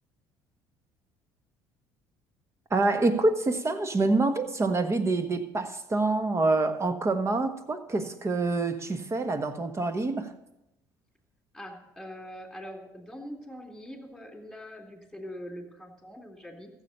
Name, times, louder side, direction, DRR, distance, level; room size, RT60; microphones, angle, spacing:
voice 1, 2.7-10.3, right 3 dB, 30° right, 1.4 m, -26 dB
voice 2, 11.5-16.7, equal, ahead, 3.5 m, -43 dB
14.5 x 7.6 x 6.8 m
hypercardioid pair, 65°, 10 cm